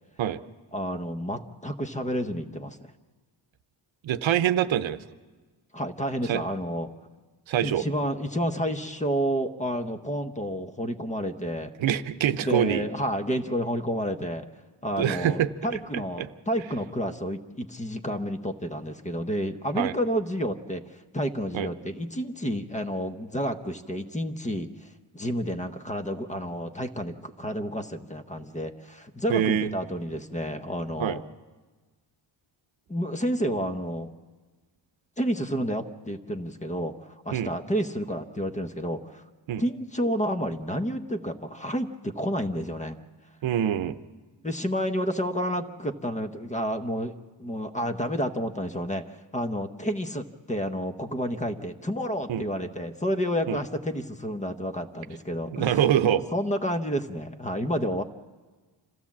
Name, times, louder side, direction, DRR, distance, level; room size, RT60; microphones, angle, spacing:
voice 1, 0.7-2.9 5.7-6.9 7.6-11.7 12.4-14.5 14.8-31.2 32.9-34.1 35.2-39.2 39.6-43.0 44.4-55.8 56.3-58.0, equal, 15° left, 7 dB, 0.8 m, -30 dB
voice 2, 4.0-5.0 6.2-6.4 7.5-7.8 11.8-12.8 15.0-15.5 15.9-16.3 19.8-19.9 21.5-21.7 29.3-29.8 31.0-31.2 37.3-37.5 39.5-39.6 43.4-44.0 52.3-52.4 53.5-53.6 55.5-56.2, right 10 dB, 80° right, 11 dB, 0.8 m, -25 dB
26.5 x 15.5 x 7.3 m, 1.3 s
wide cardioid pair, 175°, 46 cm